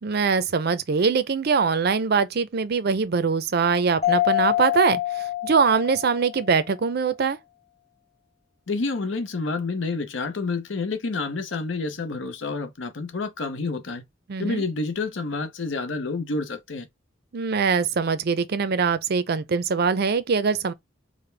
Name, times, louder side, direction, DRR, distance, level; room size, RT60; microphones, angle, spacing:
voice 1, 0.0-7.4 14.3-14.6 17.3-20.7, right 5 dB, 55° right, 0.5 m, -23 dB
Mallet percussion, 4.0-6.5, left 14 dB, 35° left, 0.7 m, -25 dB
voice 2, 8.7-14.0 14.4-16.9, left 3 dB, 75° left, 0.7 m, -29 dB
5.0 x 2.1 x 3.3 m
head